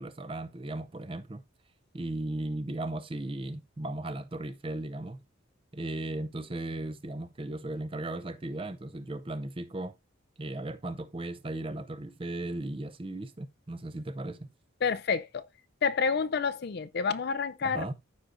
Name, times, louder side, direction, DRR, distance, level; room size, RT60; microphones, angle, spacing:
voice 1, 0.0-1.4 1.9-5.2 5.7-10.0 10.4-14.5 17.6-17.9, right 1 dB, 25° right, 0.5 m, -36 dB
voice 2, 14.8-15.4 15.8-17.9, left 5 dB, 50° left, 0.4 m, -29 dB
14.0 x 4.9 x 2.6 m
head